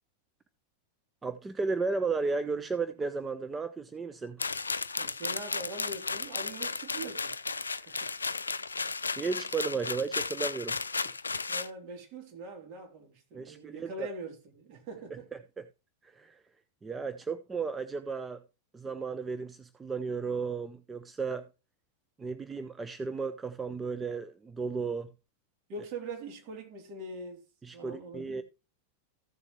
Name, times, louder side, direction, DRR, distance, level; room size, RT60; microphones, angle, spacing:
voice 1, 1.2-4.4 7.8-8.0 9.2-10.8 11.0-11.1 13.3-14.1 15.6-15.7 16.0-16.4 16.8-18.4 18.7-21.5 22.2-25.1 27.6-28.4, right 4 dB, 15° right, 0.6 m, -34 dB
sound 1, 4.4-11.7, left 4 dB, 75° left, 0.4 m, -34 dB
voice 2, 5.0-7.3 7.9-8.1 11.5-15.3 25.7-27.5 27.7-28.4, right 2 dB, 40° right, 3.1 m, -42 dB
15.0 x 7.3 x 3.1 m
figure-of-eight pair, 90°, 0 cm